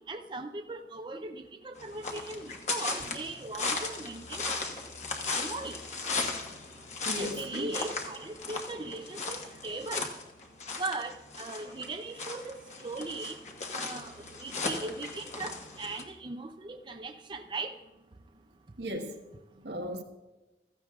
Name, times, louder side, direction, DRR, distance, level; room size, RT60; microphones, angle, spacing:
voice 1, 0.1-4.6 5.3-5.8 7.2-10.1 10.7-13.4 13.7-17.7, right 3 dB, 25° right, 0.5 m, -39 dB
sound 1, 1.8-16.0, left 4 dB, 40° left, 1.2 m, -37 dB
voice 2, 7.0-7.7 18.8-19.2 19.6-20.0, equal, 75° right, 1.4 m, -36 dB
15.5 x 14.0 x 2.4 m
head